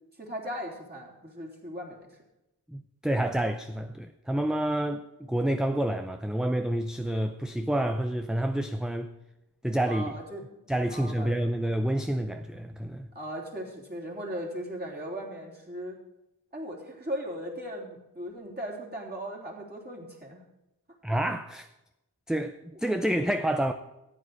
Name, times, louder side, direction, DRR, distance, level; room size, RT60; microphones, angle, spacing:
voice 1, 0.2-2.0 9.9-10.4 10.9-11.4 13.1-16.0 16.5-20.4, equal, 25° right, 3.4 m, -38 dB
voice 2, 2.7-9.1 9.6-10.2 10.7-13.1 21.0-21.7 22.3-23.7, right 1 dB, ahead, 0.5 m, -28 dB
14.0 x 8.8 x 4.8 m
wide cardioid pair, 45°, 39 cm